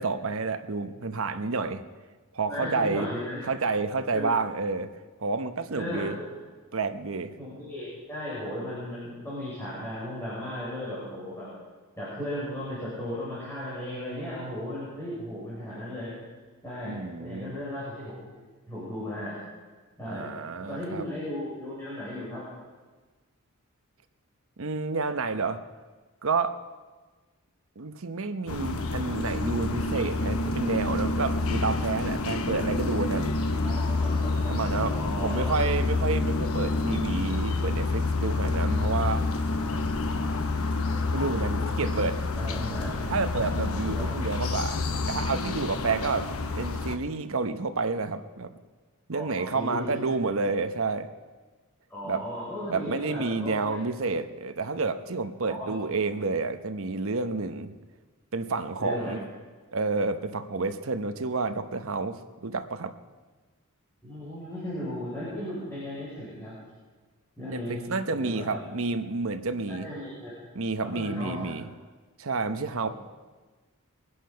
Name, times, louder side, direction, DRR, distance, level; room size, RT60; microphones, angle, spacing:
voice 1, 0.0-1.8 2.3-3.1 3.4-4.9 5.2-6.2 6.7-7.3 16.8-17.5 20.0-21.1 24.6-25.6 26.2-26.6 27.8-33.4 34.5-39.3 41.1-42.8 43.1-44.8 45.1-48.5 49.1-51.1 52.0-52.2 52.7-57.7 58.3-59.2 59.7-62.9 67.4-69.9 70.5-71.7 72.2-72.9, right 3 dB, 65° right, 9 dB, 0.9 m, -30 dB
voice 2, 2.5-3.4 4.1-4.3 5.7-6.4 7.4-11.5 12.0-16.1 16.6-18.1 18.7-19.4 20.0-20.4 20.7-22.4 33.6-35.6 41.8-42.0 42.4-42.9 43.9-44.1 49.1-50.1 51.9-53.7 55.4-55.7 58.8-59.1 64.0-66.5 67.4-67.8 68.1-68.6 69.7-70.3 70.8-71.5 72.8-72.9, left 1 dB, 10° left, -10 dB, 5.7 m, -36 dB
sound 1, 28.5-47.0, left 3 dB, 75° left, 1.1 m, -28 dB
22.5 x 10.0 x 5.7 m, 1.3 s
head